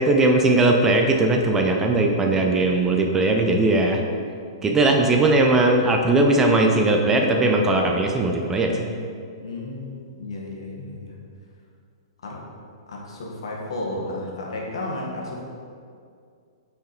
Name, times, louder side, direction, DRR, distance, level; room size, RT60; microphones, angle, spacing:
voice 1, 0.0-4.0 4.6-8.9, right 2 dB, 15° right, 2 dB, 0.5 m, -19 dB
voice 2, 1.8-2.4 9.4-11.2 12.2-12.4 12.9-15.4, left 2 dB, 80° left, -2 dB, 1.6 m, -33 dB
6.1 x 4.8 x 4.4 m, 2.3 s
hypercardioid pair, 140°, 3 cm